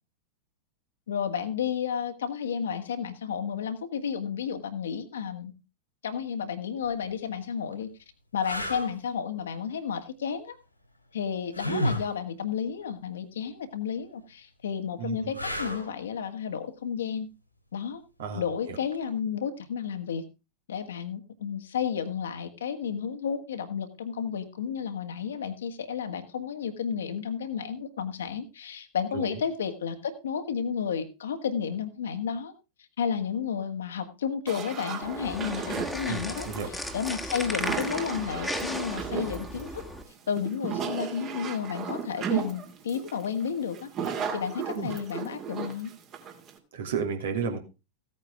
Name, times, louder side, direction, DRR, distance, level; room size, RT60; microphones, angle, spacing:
voice 1, 1.1-5.5 6.0-7.9 8.3-10.6 11.1-17.3 17.7-18.0 18.3-20.2 20.7-32.5 33.0-36.5 36.9-39.8 40.3-45.9, left 7 dB, 65° left, 8 dB, 1.7 m, -32 dB
sound 1, 6.8-7.0 7.7-7.8 8.4-8.9 11.5-12.1 15.3-16.0 18.9-19.1, equal, 85° left, 2.9 m, -30 dB
voice 2, 15.0-15.3 18.2-18.4 18.7-18.8 29.1-29.3 36.0-36.7 44.7-44.9 46.7-47.6, right 6 dB, 60° right, 4 dB, 2.7 m, -32 dB
sound 2, 34.5-46.6, right 7 dB, 35° right, 2.6 m, -35 dB
sound 3, 35.0-40.0, equal, ahead, 1.9 m, -36 dB
16.0 x 9.0 x 3.5 m, 0.28 s
figure-of-eight pair, 90°, 0 cm